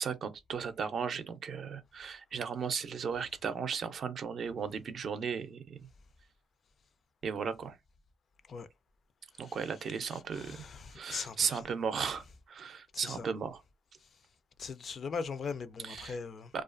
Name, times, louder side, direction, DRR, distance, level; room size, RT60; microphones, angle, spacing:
voice 1, 0.0-5.8 7.2-7.8 9.4-10.6 10.9-13.6 15.8-16.2 16.5-16.6, right 6 dB, 55° right, 0.5 m, -36 dB
voice 2, 10.3-11.6 12.9-13.3 14.6-16.5, left 5 dB, 50° left, 0.3 m, -40 dB
2.3 x 2.3 x 2.4 m
cardioid pair, 90°, 0 cm